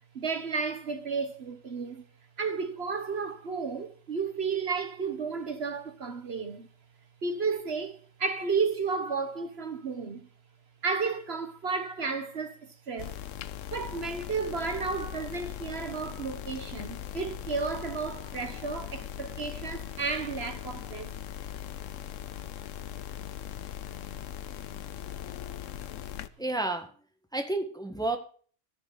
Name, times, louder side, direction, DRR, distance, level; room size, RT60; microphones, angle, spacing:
voice 1, 0.1-2.0 2.4-6.7 7.2-10.3 10.8-13.1 13.7-21.1, right 5 dB, 55° right, 1.4 m, -32 dB
sound 1, 13.0-26.3, left 10 dB, 85° left, 1.1 m, -40 dB
voice 2, 26.4-26.9 27.3-28.2, right 2 dB, 5° left, 1.4 m, -30 dB
14.0 x 6.4 x 6.5 m
omnidirectional pair, 1.3 m